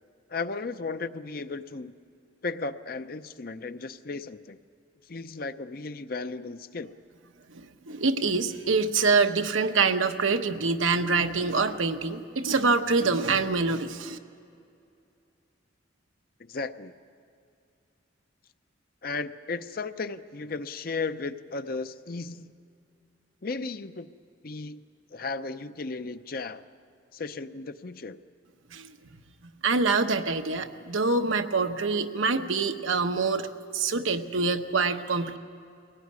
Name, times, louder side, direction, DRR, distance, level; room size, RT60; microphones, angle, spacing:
voice 1, 0.3-1.9 2.4-4.6 5.1-6.9 16.4-16.9 19.0-22.5 23.4-24.1 24.4-24.8 25.1-26.6 27.1-28.2, left 3 dB, 50° left, 11 dB, 0.6 m, -35 dB
voice 2, 7.5-14.2 28.7-28.9 29.6-33.5 33.7-35.4, right 4 dB, 90° right, 6 dB, 1.1 m, -25 dB
22.0 x 17.5 x 9.5 m, 2.4 s
head